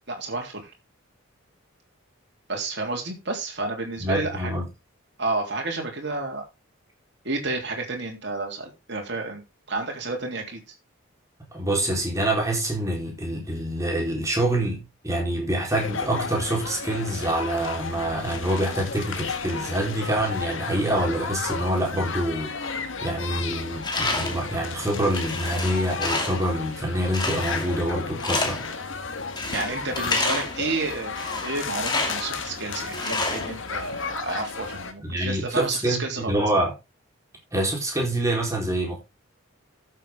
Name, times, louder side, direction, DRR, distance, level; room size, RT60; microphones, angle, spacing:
voice 1, 0.1-0.7 2.5-4.5 5.2-6.4 7.2-9.4 9.7-10.6 29.5-31.1 31.4-36.4, right 3 dB, 55° right, 3.5 m, -30 dB
voice 2, 4.0-4.6 11.5-28.6 35.0-36.7 37.5-39.0, right 1 dB, 15° right, 4.1 m, -26 dB
sound 1, 15.7-34.9, left 4 dB, 65° left, 1.6 m, -33 dB
Tools, 23.8-24.5 24.9-26.5 27.1-27.8 28.2-28.8 29.4-30.6 31.1-32.3 32.9-34.0, left 3 dB, 20° left, 2.4 m, -29 dB
13.0 x 7.7 x 3.7 m
head